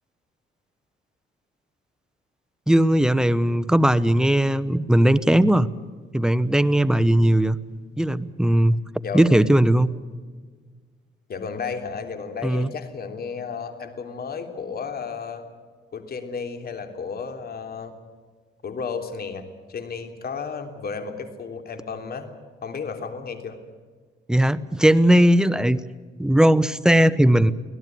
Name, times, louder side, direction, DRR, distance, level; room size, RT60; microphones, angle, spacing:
voice 1, 2.7-5.7 6.1-7.6 8.0-8.8 9.1-10.0 12.4-12.7 24.3-25.8 26.2-27.5, right 1 dB, 5° right, 14 dB, 1.0 m, -18 dB
voice 2, 11.3-15.4 15.9-17.9 18.6-22.3 22.6-23.6, left 5 dB, 50° left, 6 dB, 3.3 m, -33 dB
24.5 x 17.0 x 9.3 m, 1.5 s
cardioid pair, 90°, 20 cm